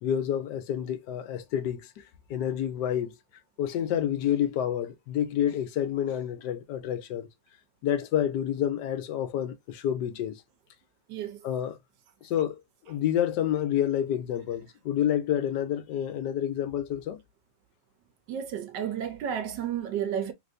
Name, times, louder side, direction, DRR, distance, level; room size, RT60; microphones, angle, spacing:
voice 1, 0.0-2.0 2.3-3.2 3.6-7.3 7.8-10.4 11.4-11.8 12.2-12.6 12.9-17.2, left 10 dB, 75° left, 1.2 m, -28 dB
voice 2, 11.1-11.4 18.3-20.3, right 9 dB, 80° right, 1.4 m, -32 dB
3.3 x 3.3 x 2.4 m
omnidirectional pair, 1.9 m